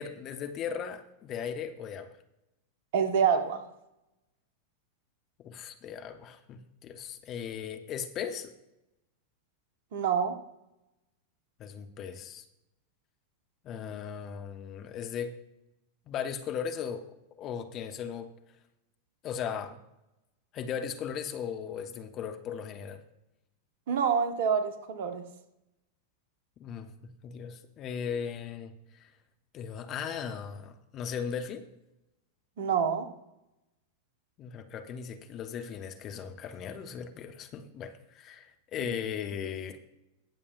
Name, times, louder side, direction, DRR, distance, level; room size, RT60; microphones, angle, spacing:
voice 1, 0.0-2.1 5.4-8.5 11.6-12.4 13.6-15.3 16.1-18.3 19.2-19.8 20.5-23.0 26.6-26.9 27.2-28.7 29.0-29.1 29.5-31.7 34.4-39.8, left 7 dB, 35° left, 7 dB, 1.0 m, -37 dB
voice 2, 2.9-3.6 9.9-10.4 23.9-25.2 32.6-33.1, right 7 dB, 50° right, 8 dB, 1.2 m, -26 dB
21.0 x 7.1 x 2.5 m, 0.89 s
figure-of-eight pair, 90°, 0 cm